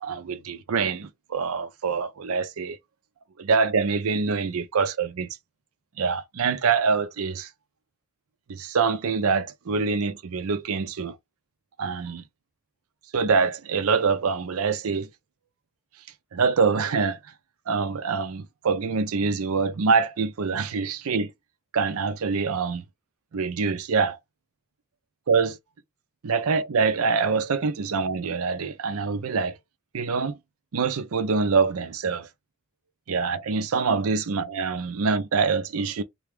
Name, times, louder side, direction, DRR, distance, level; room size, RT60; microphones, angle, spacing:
voice 1, 0.0-2.8 3.4-5.3 6.0-7.5 8.5-11.1 11.8-12.2 13.1-15.1 16.3-17.2 17.7-21.3 21.7-22.8 23.3-24.2 25.3-25.6 26.2-29.6 29.9-30.4 30.7-32.3 33.1-36.0, right 5 dB, 80° right, 0.5 m, -25 dB
3.3 x 2.3 x 3.4 m
head